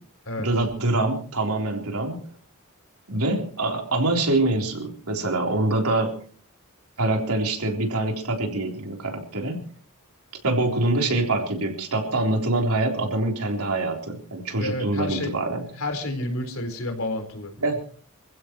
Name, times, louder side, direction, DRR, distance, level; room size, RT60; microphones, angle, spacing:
voice 1, 0.4-2.2 3.1-6.2 7.0-9.6 10.4-15.7 17.6-17.8, right 2 dB, 80° right, 2 dB, 3.8 m, -25 dB
voice 2, 14.6-15.3 15.8-17.5, left 1 dB, 70° left, 5 dB, 4.3 m, -30 dB
26.5 x 15.5 x 3.1 m, 0.43 s
head